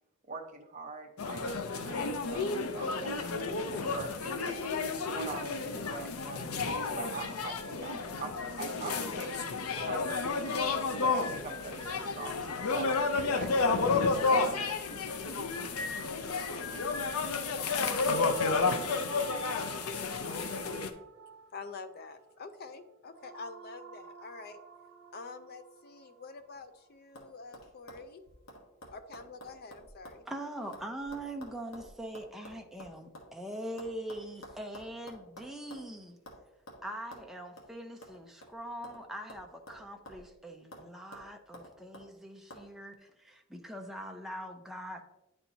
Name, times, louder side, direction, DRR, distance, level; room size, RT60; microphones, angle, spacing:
voice 1, 0.3-4.5 5.0-9.3 9.8-13.8 14.2-15.0, right 3 dB, 35° right, 2 dB, 0.9 m, -43 dB
sound 1, 1.2-20.9, left 4 dB, 90° left, 0.6 m, -31 dB
sound 2, 18.0-28.2, right 6 dB, 65° right, 1.0 m, -49 dB
voice 2, 21.5-24.6 25.1-28.2 28.9-30.2, left 4 dB, 45° left, 10 dB, 0.4 m, -46 dB
sound 3, 26.4-26.8 27.1-27.3 27.5-30.2 30.5-33.3 33.8-35.9 36.3-36.4 36.7-36.8 37.1-37.3 37.6-37.7 38.0-39.0 39.3-40.3 40.7-40.9 41.1-42.1 42.5-42.6, equal, 65° left, 1.3 m, -50 dB
voice 3, 30.3-36.2 36.8-45.0, right 1 dB, ahead, 2 dB, 0.5 m, -42 dB
10.0 x 4.4 x 2.7 m, 0.97 s
head